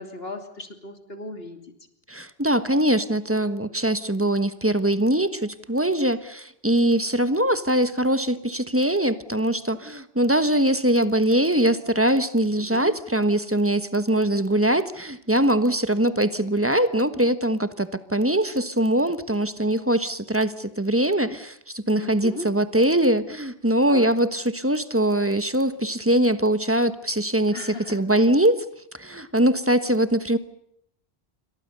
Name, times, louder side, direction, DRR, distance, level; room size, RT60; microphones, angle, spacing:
voice 1, 0.0-1.6 12.6-12.9 21.9-22.5 23.9-24.1 27.5-28.0, left 2 dB, 65° left, 7 dB, 3.3 m, -36 dB
voice 2, 2.1-28.6 28.9-30.4, right 1 dB, 15° right, 12 dB, 1.3 m, -22 dB
28.0 x 25.0 x 6.8 m, 0.74 s
omnidirectional pair, 1.1 m